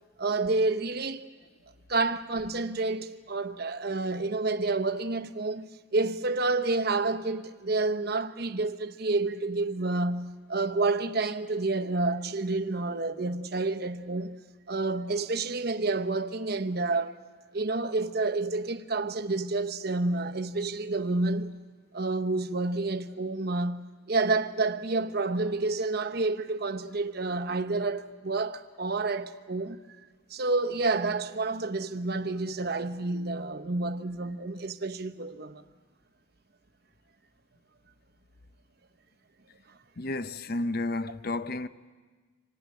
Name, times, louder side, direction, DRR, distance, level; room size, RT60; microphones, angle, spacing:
voice 1, 0.2-1.2 1.9-14.4 14.7-17.1 17.5-21.6 21.9-29.8 30.3-35.6, right 3 dB, 50° right, 0.9 m, -29 dB
voice 2, 40.0-41.7, left 2 dB, 45° left, 0.7 m, -31 dB
25.5 x 19.0 x 9.4 m
head